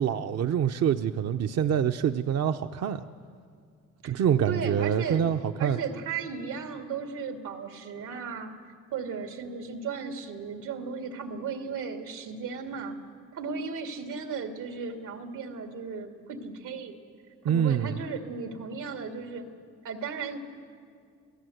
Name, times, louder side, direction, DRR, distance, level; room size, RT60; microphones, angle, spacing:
voice 1, 0.0-3.0 4.0-5.8 17.4-18.0, right 8 dB, 55° right, 7 dB, 0.7 m, -26 dB
voice 2, 4.0-5.3 5.6-8.5 8.9-13.0 13.3-17.0 17.4-19.5 19.8-20.4, right 5 dB, 90° right, 4 dB, 2.4 m, -35 dB
28.0 x 17.0 x 7.9 m, 2.2 s
cardioid pair, 90°, 30 cm